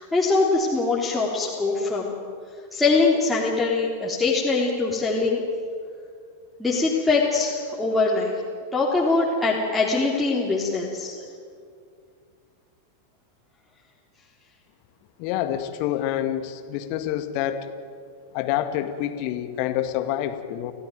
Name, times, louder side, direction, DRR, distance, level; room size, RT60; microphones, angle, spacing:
voice 1, 0.0-2.1 2.7-5.4 6.6-8.3 8.7-11.1, left 3 dB, 5° left, -6 dB, 3.7 m, -22 dB
voice 2, 15.2-17.7 18.3-20.7, left 11 dB, 45° left, 9 dB, 2.0 m, -27 dB
29.5 x 17.0 x 9.4 m, 2.2 s
figure-of-eight pair, 90°, 0 cm